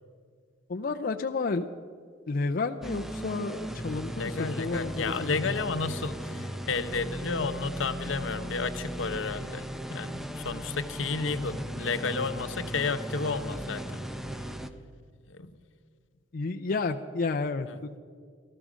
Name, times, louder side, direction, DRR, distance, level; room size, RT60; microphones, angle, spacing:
voice 1, 0.7-1.7 2.3-5.6 11.3-11.6 16.3-18.0, left 3 dB, 50° left, 5 dB, 0.5 m, -31 dB
sound 1, 2.8-14.7, equal, ahead, 0.6 m, -37 dB
voice 2, 4.2-14.0 15.3-15.6 17.7-17.8, left 4 dB, 70° left, 11 dB, 0.8 m, -32 dB
18.0 x 13.5 x 5.0 m, 2.1 s
head